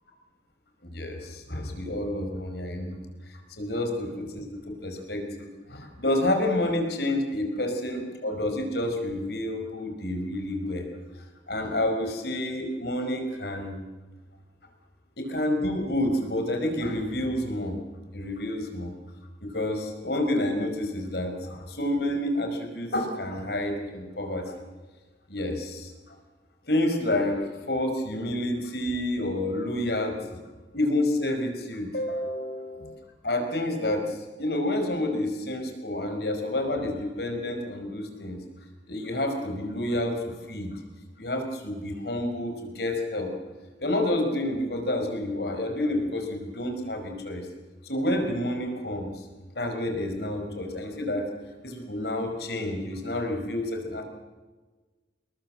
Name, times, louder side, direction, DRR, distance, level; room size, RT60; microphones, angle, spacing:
voice 1, 0.8-3.0 3.3-10.9 11.2-13.8 15.2-17.8 18.1-18.9 19.4-24.6 25.3-26.2 26.7-30.2 30.7-38.4 38.9-40.7 41.2-43.3 43.8-47.5 47.8-49.3 49.5-51.3 51.6-54.0, left 1 dB, 60° left, 4 dB, 5.2 m, -29 dB
27.5 x 21.5 x 7.7 m, 1.3 s
head